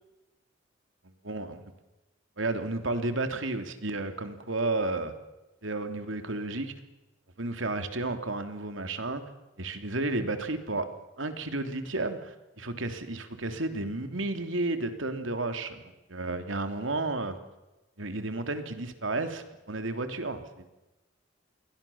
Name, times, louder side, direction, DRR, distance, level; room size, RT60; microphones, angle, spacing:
voice 1, 1.2-1.6 2.4-5.1 5.6-6.7 7.4-9.3 9.6-10.9 11.2-17.4 18.0-20.7, right 2 dB, 90° right, 8 dB, 3.1 m, -32 dB
29.0 x 23.0 x 7.2 m, 1.0 s
head